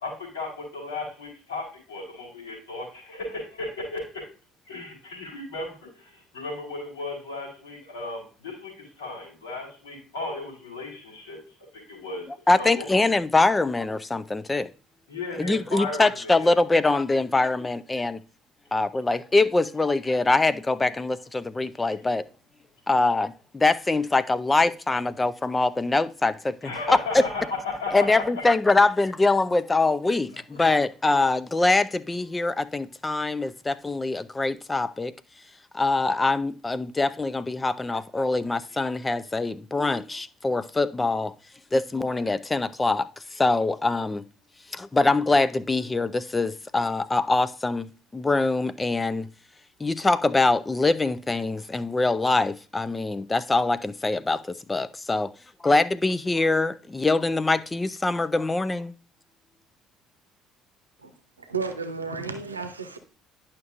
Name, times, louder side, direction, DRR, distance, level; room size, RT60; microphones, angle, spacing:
voice 1, 0.0-4.0 4.7-8.7 9.0-11.4 11.9-12.3 12.6-12.9 15.1-16.5 26.6-27.3 27.8-28.1 28.4-28.5, left 3 dB, 80° left, 3.5 m, -35 dB
voice 2, 12.3-14.7 15.3-18.2 18.7-22.2 22.9-27.2 27.9-35.1 35.7-41.3 41.7-44.2 44.7-49.3 49.8-55.3 55.6-58.9, left 3 dB, 20° left, 0.5 m, -24 dB
voice 3, 61.4-63.0, right 4 dB, 85° right, 0.7 m, -32 dB
10.5 x 5.9 x 2.5 m
figure-of-eight pair, 50°, 0 cm